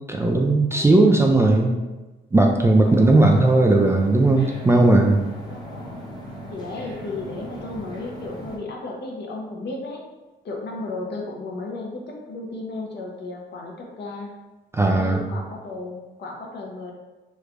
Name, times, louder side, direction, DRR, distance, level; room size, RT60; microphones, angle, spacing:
voice 1, 0.1-1.8 2.3-5.2 14.7-15.2, right 2 dB, 15° right, 1 dB, 0.3 m, -17 dB
voice 2, 0.7-1.2 2.8-3.3 5.5-6.0 6.5-10.0 10.4-14.3 14.9-16.9, left 2 dB, 60° left, 0 dB, 0.8 m, -34 dB
sound 1, 2.8-8.6, equal, 20° left, 0.8 m, -38 dB
3.3 x 3.2 x 2.5 m, 1.1 s
cardioid pair, 90°, 20 cm